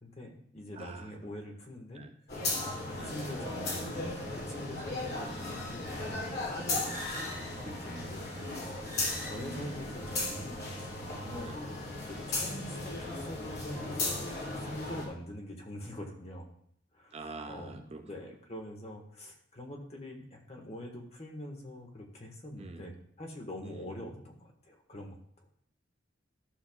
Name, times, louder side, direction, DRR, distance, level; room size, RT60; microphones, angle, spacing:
voice 1, 0.0-2.0 2.6-7.0 7.6-8.3 8.5-10.7 10.9-11.5 12.1-13.4 13.6-14.1 14.6-16.5 16.9-17.2 17.5-25.2, left 1 dB, 35° left, 1 dB, 1.6 m, -44 dB
voice 2, 0.7-1.1 1.9-2.1 2.9-3.2 6.8-7.0 7.9-8.1 9.3-10.0 11.4-11.6 17.1-18.0 22.6-22.8 23.7-23.9, right 3 dB, 30° right, 6 dB, 0.5 m, -46 dB
sound 1, 2.3-15.1, left 2 dB, 55° left, 3.0 m, -36 dB
13.5 x 6.9 x 2.4 m, 0.65 s
head